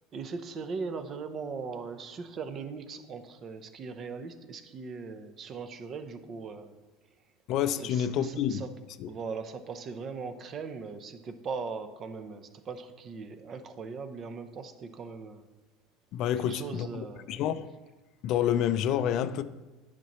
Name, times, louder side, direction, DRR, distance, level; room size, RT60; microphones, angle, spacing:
voice 1, 0.1-6.7 7.8-8.7 9.1-15.5 16.4-17.5, right 5 dB, 40° right, 0.8 m, -39 dB
voice 2, 7.5-8.6 9.0-9.1 16.1-16.9 17.3-17.7 18.2-19.4, left 10 dB, 55° left, 0.4 m, -28 dB
9.8 x 5.9 x 3.1 m
supercardioid pair, 110°, 0 cm